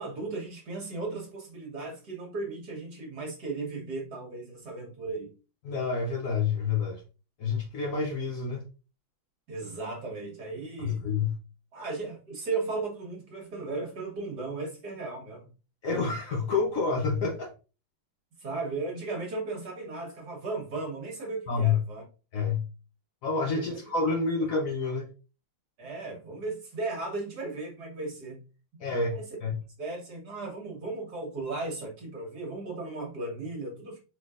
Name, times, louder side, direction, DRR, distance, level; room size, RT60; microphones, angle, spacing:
voice 1, 0.0-5.3 9.5-11.0 11.7-15.5 18.4-22.0 23.5-23.8 24.8-24.9 25.8-28.4 29.1-29.3 29.8-34.0, right 3 dB, 55° right, -1 dB, 1.7 m, -36 dB
voice 2, 5.6-7.0 7.4-8.6 10.8-11.3 15.8-17.5 21.5-21.8 22.3-22.7 23.2-25.1 28.8-29.5, left 4 dB, 75° left, 1 dB, 0.7 m, -28 dB
4.7 x 3.9 x 2.5 m, 0.33 s
omnidirectional pair, 2.3 m